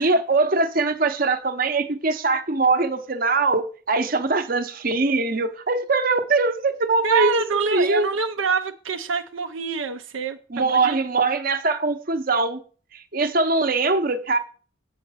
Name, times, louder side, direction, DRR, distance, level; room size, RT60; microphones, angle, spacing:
voice 1, 0.0-8.1 10.5-12.6 12.9-14.4, right 3 dB, 45° right, 0.9 m, -22 dB
voice 2, 7.0-11.0, right 5 dB, 70° right, 0.6 m, -26 dB
8.4 x 6.4 x 5.7 m
head